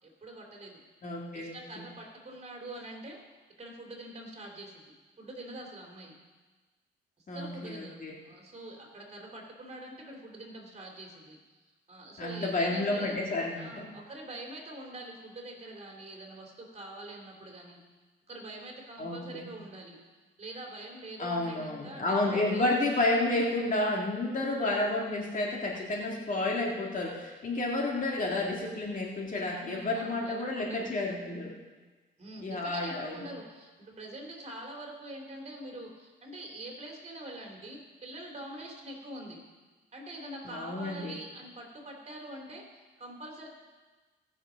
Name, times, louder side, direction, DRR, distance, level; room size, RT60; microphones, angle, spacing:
voice 1, 0.0-0.8 1.3-3.2 3.6-6.1 7.3-11.4 11.9-13.2 13.6-17.8 18.3-20.0 20.4-22.7 29.6-30.9 32.2-39.4 39.9-43.5, right 1 dB, 35° right, 1 dB, 3.0 m, -44 dB
voice 2, 1.0-1.8 7.3-8.1 12.2-13.9 19.0-19.5 21.2-31.5 32.4-33.2 40.4-41.1, left 2 dB, 40° left, -2 dB, 2.1 m, -31 dB
18.5 x 6.3 x 5.1 m, 1.3 s
cardioid pair, 90°, 20 cm